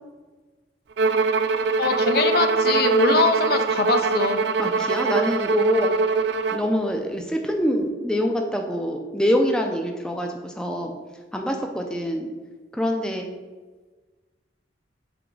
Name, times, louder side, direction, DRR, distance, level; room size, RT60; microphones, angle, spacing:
Bowed string instrument, 1.0-6.7, right 4 dB, 65° right, 0.3 m, -22 dB
voice 1, 1.8-4.4, left 4 dB, 55° left, 7 dB, 0.5 m, -22 dB
voice 2, 4.6-5.9 6.5-10.9 11.3-12.3 12.7-13.3, equal, 5° left, 3 dB, 0.4 m, -25 dB
6.1 x 4.0 x 4.6 m, 1.3 s
head